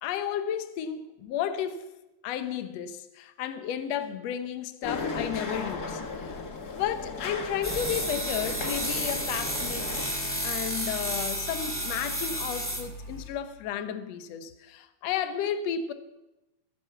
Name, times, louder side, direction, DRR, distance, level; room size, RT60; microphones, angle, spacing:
voice 1, 0.0-1.9 2.2-6.3 6.8-15.9, left 9 dB, 65° left, 2.0 m, -33 dB
sound 1, 4.8-10.1, left 4 dB, 40° left, 1.6 m, -36 dB
sound 2, 7.6-13.3, equal, 5° left, 1.9 m, -32 dB
23.5 x 9.6 x 5.9 m
omnidirectional pair, 3.6 m